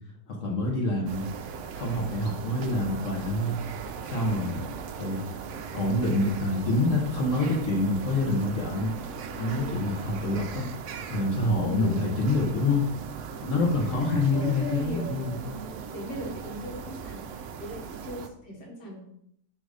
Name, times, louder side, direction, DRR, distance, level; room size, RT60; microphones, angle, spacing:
voice 1, 0.3-1.2 1.7-3.6 4.0-4.7 5.0-5.2 5.7-8.9 9.4-10.6 11.1-12.8 13.4-15.4, left 2 dB, 55° left, -1 dB, 1.5 m, -26 dB
sound 1, 1.1-18.3, right 6 dB, 70° right, 0.7 m, -39 dB
voice 2, 9.3-9.8 11.4-12.1 13.4-19.0, equal, 80° left, -1 dB, 2.1 m, -38 dB
5.2 x 3.9 x 4.9 m, 0.73 s
omnidirectional pair, 1.7 m